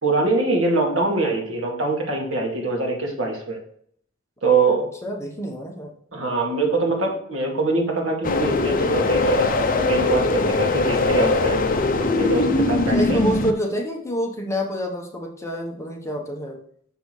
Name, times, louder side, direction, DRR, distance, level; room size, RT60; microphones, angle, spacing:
voice 1, 0.0-3.6 4.4-4.9 6.1-11.6 12.1-13.2, right 3 dB, 70° right, 0 dB, 2.2 m, -23 dB
voice 2, 5.0-5.9 12.9-16.6, equal, 15° left, 0 dB, 1.1 m, -27 dB
sound 1, 8.2-13.5, left 3 dB, 40° left, 0.7 m, -21 dB
6.5 x 6.1 x 3.3 m, 0.62 s
head